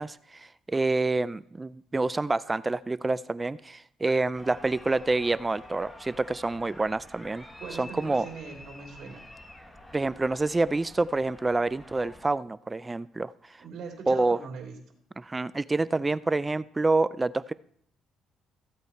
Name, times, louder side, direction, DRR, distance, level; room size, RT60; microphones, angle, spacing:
voice 1, 0.0-7.4 7.8-8.3 9.9-13.3 14.1-14.4 15.2-17.5, right 3 dB, 20° right, 18 dB, 0.3 m, -27 dB
sound 1, 4.3-12.3, left 1 dB, 10° left, 1.5 m, -48 dB
voice 2, 7.6-9.2 13.6-14.7, right 5 dB, 60° right, 3 dB, 2.9 m, -41 dB
15.0 x 8.3 x 4.5 m, 0.67 s
cardioid pair, 105°, 0 cm